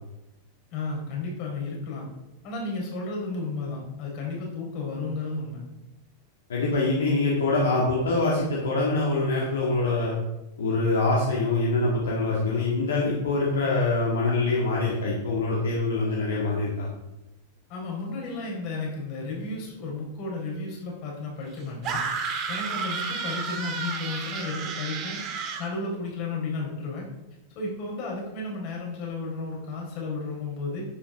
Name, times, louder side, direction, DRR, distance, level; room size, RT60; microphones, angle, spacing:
voice 1, 0.7-2.1 2.4-5.6 17.7-25.2 25.6-27.1 27.5-30.9, left 3 dB, 45° left, -1 dB, 4.0 m, -33 dB
voice 2, 6.5-10.1 10.6-16.9, left 2 dB, 65° left, -3 dB, 2.1 m, -24 dB
sound 1, 21.8-25.7, right 5 dB, 35° right, 1.7 m, -31 dB
11.0 x 9.0 x 3.7 m, 0.96 s
figure-of-eight pair, 90°, 0 cm